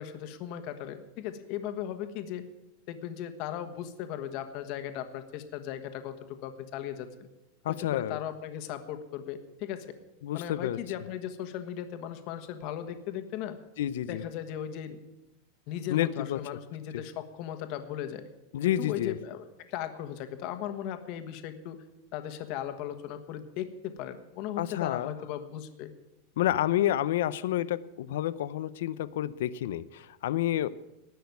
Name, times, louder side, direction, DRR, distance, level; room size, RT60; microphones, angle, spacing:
voice 1, 0.0-2.5 2.9-7.3 7.7-9.9 10.3-13.6 14.1-15.0 15.7-18.2 18.6-21.8 22.1-25.9, left 10 dB, 40° left, 8 dB, 1.4 m, -37 dB
voice 2, 7.6-8.2 10.2-10.8 13.8-14.2 15.9-16.4 16.9-17.0 18.5-19.2 24.6-25.1 26.4-30.7, left 12 dB, 75° left, 17 dB, 0.7 m, -29 dB
18.5 x 6.3 x 9.4 m, 0.96 s
supercardioid pair, 165°, 0 cm